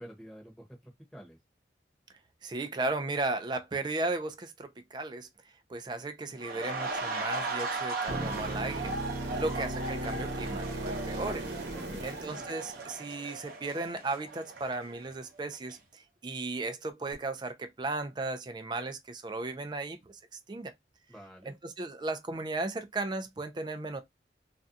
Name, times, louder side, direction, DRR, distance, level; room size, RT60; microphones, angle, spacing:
voice 1, 0.0-1.4 9.3-9.5 11.7-12.1 21.1-21.5, equal, ahead, 0.9 m, -49 dB
voice 2, 2.4-5.3 5.7-8.9 9.2-11.5 12.0-20.2 20.5-20.7 21.6-24.0, right 2 dB, 25° right, 0.4 m, -35 dB
sound 1, 6.4-15.2 15.5-15.7, right 3 dB, 55° right, 0.7 m, -38 dB
sound 2, 8.1-13.1 17.1-17.2, right 1 dB, 80° right, 0.9 m, -37 dB
2.5 x 2.2 x 2.6 m
head